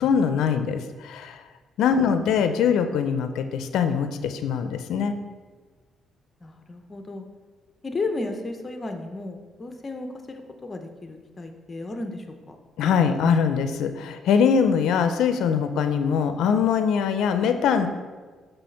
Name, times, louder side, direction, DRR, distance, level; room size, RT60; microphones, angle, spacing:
voice 1, 0.0-1.4 1.8-5.2 12.8-17.9, left 7 dB, 80° left, 9 dB, 0.4 m, -22 dB
voice 2, 6.4-7.2 7.8-12.6, left 2 dB, 30° left, 5 dB, 0.7 m, -34 dB
6.1 x 3.3 x 5.7 m, 1.4 s
cardioid pair, 90°, 0 cm